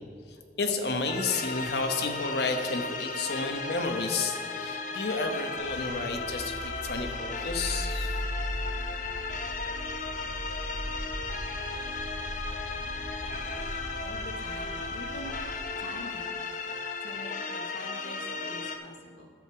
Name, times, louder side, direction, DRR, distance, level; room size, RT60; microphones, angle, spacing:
voice 1, 0.6-8.1, left 3 dB, 65° left, 5 dB, 1.0 m, -31 dB
sound 1, 1.1-18.8, left 4 dB, 45° left, 0.7 m, -35 dB
sound 2, 5.5-15.6, equal, 25° left, 1.4 m, -38 dB
voice 2, 14.0-15.3 15.8-16.3 17.0-19.3, left 1 dB, 80° left, 1 dB, 1.2 m, -44 dB
10.5 x 7.8 x 4.5 m, 2.3 s
head